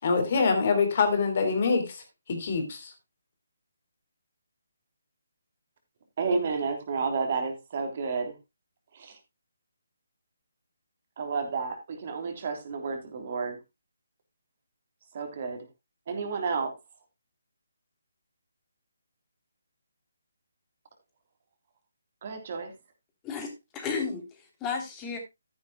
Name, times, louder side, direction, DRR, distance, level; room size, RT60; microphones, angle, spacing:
voice 1, 0.0-2.0 2.3-2.9, left 4 dB, 45° left, 6 dB, 3.4 m, -25 dB
voice 2, 6.2-8.3 8.9-9.2 11.2-13.6 15.1-15.7 16.1-16.7 22.2-22.7, right 4 dB, 40° right, 6 dB, 3.3 m, -31 dB
voice 3, 23.2-25.2, left 5 dB, 15° left, 3 dB, 3.2 m, -33 dB
14.0 x 10.5 x 2.2 m, 0.22 s
figure-of-eight pair, 145°, 0 cm